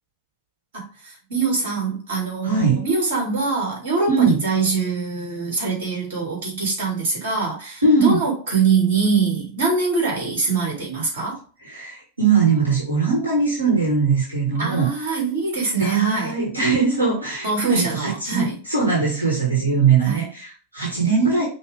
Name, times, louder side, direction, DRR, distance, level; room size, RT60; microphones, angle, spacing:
voice 1, 0.7-11.4 14.5-16.4 17.4-18.6 20.0-20.3, right 4 dB, 55° right, 2.0 m, -23 dB
voice 2, 2.4-2.8 4.1-4.4 7.8-8.2 11.6-14.9 15.8-21.5, right 4 dB, 80° right, 1.5 m, -20 dB
5.6 x 2.5 x 3.2 m
figure-of-eight pair, 90°, 0 cm